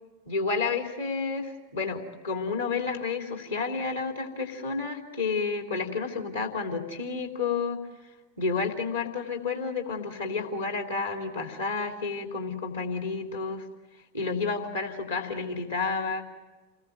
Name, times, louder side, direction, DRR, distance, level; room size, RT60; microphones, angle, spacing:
voice 1, 0.3-7.8 8.4-13.6 14.1-16.2, left 4 dB, 75° left, 3 dB, 3.3 m, -30 dB
28.5 x 21.0 x 7.8 m, 1.2 s
figure-of-eight pair, 90°, 0 cm